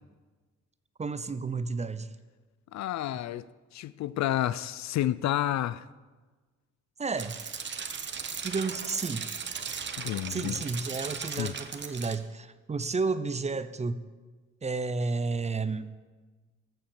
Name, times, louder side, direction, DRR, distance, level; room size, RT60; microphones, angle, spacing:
voice 1, 1.0-2.1 7.0-7.3 8.4-9.3 10.3-14.0 14.6-16.0, right 4 dB, 20° right, 0.6 m, -31 dB
voice 2, 2.7-3.5 3.7-5.9 10.0-10.5 11.4-11.5, left 13 dB, 65° left, 0.5 m, -30 dB
sound 1, 7.2-12.2, right 6 dB, 35° right, 1.0 m, -37 dB
14.5 x 5.8 x 7.2 m
cardioid pair, 90°, 30 cm